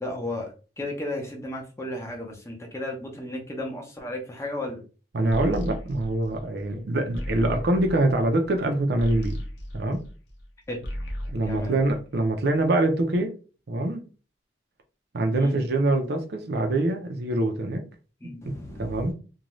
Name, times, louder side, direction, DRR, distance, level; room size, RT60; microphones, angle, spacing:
voice 1, 0.0-4.8 10.7-10.8 11.5-11.7 15.4-15.6 18.2-19.0, left 1 dB, 15° left, 0.6 m, -34 dB
voice 2, 5.1-9.4 9.7-10.0 11.3-13.3 13.7-14.0 15.1-17.8 18.8-19.1, right 2 dB, 60° right, 0.5 m, -24 dB
sound 1, 5.3-10.5 10.7-12.5, equal, 80° left, 0.7 m, -36 dB
2.5 x 2.2 x 3.0 m
head